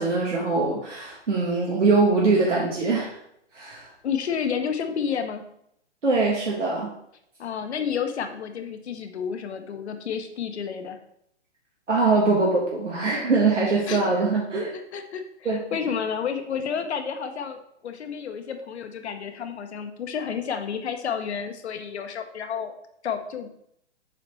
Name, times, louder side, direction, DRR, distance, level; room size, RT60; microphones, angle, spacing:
voice 1, 0.0-3.2 3.5-3.9 6.0-6.9 11.9-14.8 15.5-15.6, right 3 dB, 90° right, -4 dB, 1.8 m, -22 dB
voice 2, 4.0-5.4 7.4-11.0 13.7-14.1 14.7-22.7 23.0-23.5, left 7 dB, 65° left, 7 dB, 1.2 m, -30 dB
7.3 x 4.3 x 4.4 m, 0.74 s
hypercardioid pair, 130°, 35 cm